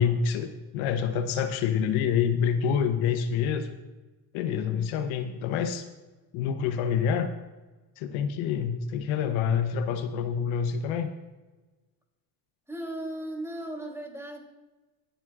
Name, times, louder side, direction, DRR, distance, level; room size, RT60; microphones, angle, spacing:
voice 1, 0.0-3.8 4.3-5.8 6.3-7.3 8.0-11.1, left 7 dB, 75° left, 8 dB, 1.0 m, -27 dB
voice 2, 12.7-14.4, right 1 dB, 5° right, 1 dB, 3.0 m, -36 dB
21.0 x 7.5 x 2.5 m, 1.2 s
supercardioid pair, 75°, 49 cm